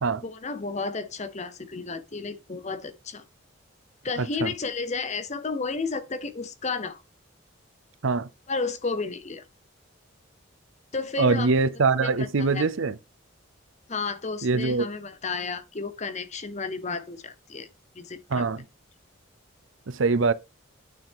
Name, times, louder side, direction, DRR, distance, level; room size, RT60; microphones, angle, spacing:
voice 1, 0.2-3.2 4.0-7.0 8.5-9.4 10.9-11.5 12.0-12.6 13.9-17.7 18.0-18.5, left 4 dB, 35° left, 0.7 m, -32 dB
voice 2, 4.2-4.5 8.0-8.3 11.2-13.0 14.4-14.9 18.3-18.6 19.9-20.3, right 4 dB, 70° right, 0.6 m, -23 dB
9.3 x 5.7 x 3.5 m
head